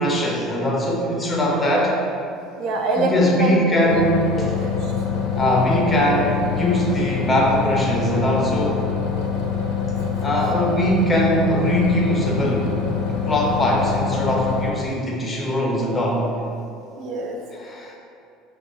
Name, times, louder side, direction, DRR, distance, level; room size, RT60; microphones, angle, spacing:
voice 1, 0.0-2.0 3.0-4.5 5.4-8.8 10.2-12.7 13.1-16.3 17.5-18.0, equal, 15° left, -3 dB, 0.7 m, -21 dB
voice 2, 2.6-4.0 4.4-4.9 17.0-17.4, right 2 dB, 50° right, 1 dB, 0.5 m, -24 dB
sound 1, 3.9-14.7, left 6 dB, 85° left, 0.5 m, -25 dB
4.9 x 2.3 x 4.0 m, 2.6 s
cardioid pair, 155°, 0 cm